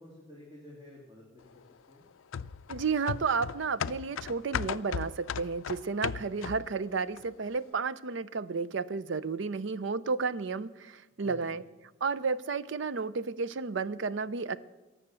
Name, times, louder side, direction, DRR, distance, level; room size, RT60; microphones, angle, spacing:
voice 1, 0.0-2.0 11.2-11.6, left 1 dB, 20° right, -5 dB, 2.6 m, -52 dB
sound 1, 2.3-6.8 7.2-7.3, left 7 dB, 75° left, 0.4 m, -36 dB
voice 2, 2.7-11.6 12.0-14.6, right 4 dB, 60° right, 17 dB, 0.5 m, -32 dB
18.0 x 7.4 x 6.9 m, 1.1 s
head